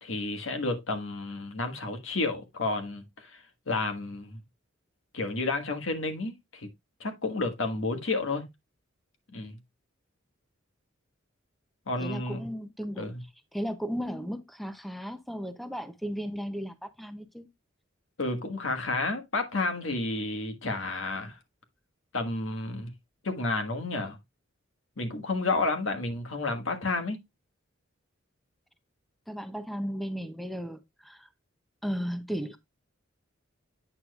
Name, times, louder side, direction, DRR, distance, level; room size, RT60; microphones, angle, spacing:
voice 1, 0.0-4.4 5.1-6.7 7.0-8.4 9.3-9.5 11.9-12.5 13.0-13.2 18.2-21.4 22.1-22.9 23.2-24.2 25.0-27.2, left 2 dB, 70° left, 1.5 m, -31 dB
voice 2, 12.0-13.1 13.5-17.5 29.3-31.3 31.8-32.6, equal, ahead, 0.6 m, -35 dB
8.7 x 6.5 x 2.3 m
head